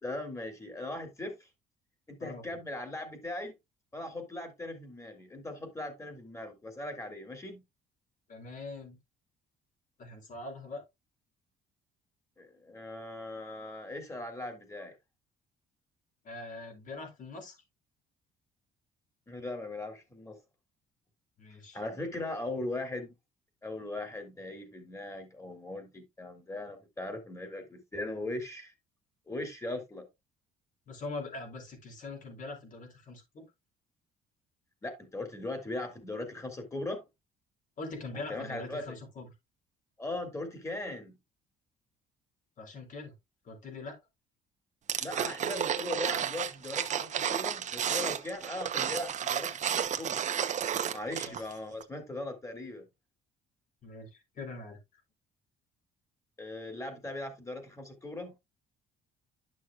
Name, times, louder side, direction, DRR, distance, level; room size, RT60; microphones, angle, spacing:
voice 1, 0.0-1.5 2.1-3.5 3.9-7.6 12.4-14.9 19.3-20.4 21.7-23.1 23.6-28.7 29.3-30.1 34.8-37.0 38.3-39.0 40.0-41.2 45.0-50.3 50.9-52.9 56.4-58.3, left 2 dB, 15° left, 3.0 m, -39 dB
voice 2, 8.3-9.0 10.0-10.8 16.2-17.6 21.4-21.8 30.9-33.5 37.8-39.3 42.6-43.1 43.4-44.0 51.2-51.3 53.8-54.8, left 3 dB, 50° left, 4.2 m, -42 dB
sound 1, 44.9-51.5 51.8-51.9, right 9 dB, 45° right, 1.0 m, -32 dB
11.5 x 6.3 x 2.5 m
cardioid pair, 110°, 17 cm